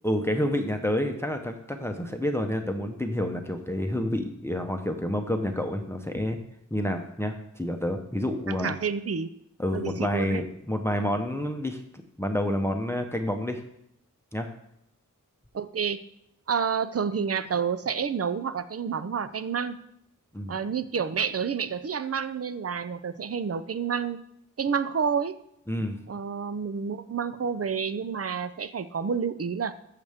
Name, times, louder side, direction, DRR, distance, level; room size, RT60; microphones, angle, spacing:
voice 1, 0.0-6.4 6.7-8.7 9.6-11.8 12.2-13.6 14.3-14.5 20.3-20.6 25.7-26.0, left 1 dB, 10° left, 5 dB, 0.9 m, -29 dB
voice 2, 8.5-9.3 9.7-10.4 15.5-16.0 16.5-19.8 20.5-24.2 24.6-25.4 26.1-29.7, right 6 dB, 45° right, 13 dB, 0.6 m, -29 dB
14.0 x 6.6 x 3.6 m, 0.76 s
wide cardioid pair, 50°, 33 cm